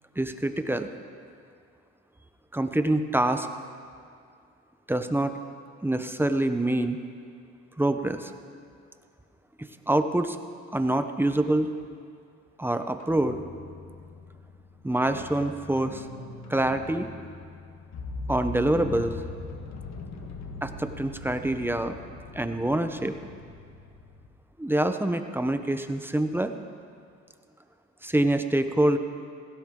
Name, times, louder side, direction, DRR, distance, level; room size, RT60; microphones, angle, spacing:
voice 1, 0.2-0.9 2.5-3.5 4.9-5.4 5.8-7.0 7.8-8.3 9.6-10.4 10.7-11.7 12.6-13.4 14.8-16.0 16.5-17.1 18.3-19.1 20.6-22.0 22.3-23.1 24.6-26.5 28.0-29.0, right 1 dB, 5° right, 8 dB, 0.8 m, -25 dB
sound 1, 13.0-24.3, left 3 dB, 65° left, 1.7 m, -41 dB
17.0 x 16.5 x 3.8 m, 2.3 s
cardioid pair, 90°, 30 cm